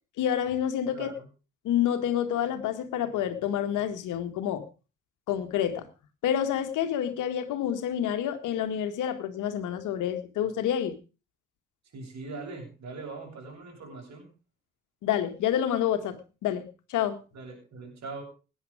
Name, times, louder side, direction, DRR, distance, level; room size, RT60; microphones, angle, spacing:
voice 1, 0.2-1.1 1.6-4.7 5.3-5.9 6.2-11.0 15.0-17.2, left 10 dB, 75° left, 9 dB, 1.9 m, -28 dB
voice 2, 0.9-1.3 11.9-14.3 17.3-18.2, right 3 dB, 60° right, 1 dB, 7.8 m, -41 dB
18.5 x 10.0 x 5.0 m, 0.35 s
hypercardioid pair, 45°, 31 cm